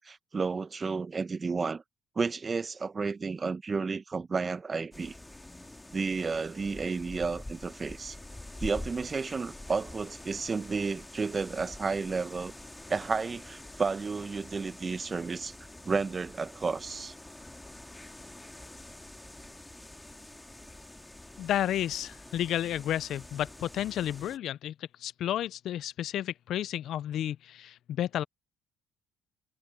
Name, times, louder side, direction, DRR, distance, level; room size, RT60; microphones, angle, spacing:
voice 1, 0.0-1.8 2.2-5.1 5.9-8.2 8.6-12.5 12.9-15.5 15.8-17.1, right 4 dB, 35° right, 1.1 m, -32 dB
sound 1, 4.9-24.4, left 1 dB, 10° left, 2.3 m, -46 dB
voice 2, 21.4-24.7 25.0-28.2, left 11 dB, 65° left, 0.5 m, -32 dB
supercardioid pair, 70°, 0 cm